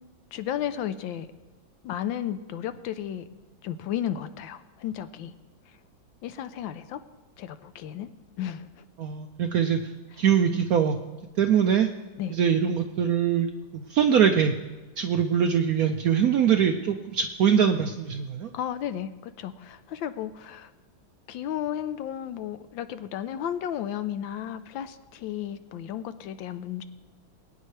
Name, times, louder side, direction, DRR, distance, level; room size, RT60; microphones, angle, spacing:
voice 1, 0.3-1.3 1.8-3.3 3.6-5.3 6.2-7.0 7.4-8.1 8.4-8.8 12.2-12.4 18.5-20.7 21.3-26.8, left 10 dB, 80° left, 11 dB, 1.4 m, -33 dB
voice 2, 9.0-9.8 10.2-11.0 11.4-11.9 12.3-13.5 13.7-14.5 15.0-18.5, right 8 dB, 70° right, 6 dB, 0.8 m, -22 dB
21.0 x 9.3 x 3.3 m, 1.2 s
omnidirectional pair, 2.1 m